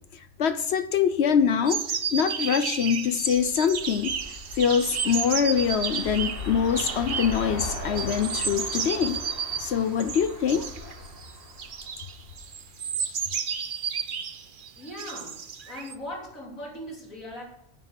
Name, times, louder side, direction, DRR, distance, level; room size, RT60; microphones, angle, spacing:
voice 1, 0.1-1.8 2.1-4.2 4.5-9.2 9.6-10.7, left 7 dB, 60° left, 12 dB, 0.8 m, -24 dB
sound 1, 1.7-15.9, right 6 dB, 45° right, 0.8 m, -32 dB
sound 2, 3.2-12.5, left 2 dB, 45° left, 2.9 m, -39 dB
voice 2, 14.8-15.4 15.7-17.4, left 1 dB, 85° left, -2 dB, 3.9 m, -39 dB
10.0 x 9.0 x 6.7 m, 0.77 s
omnidirectional pair, 1.4 m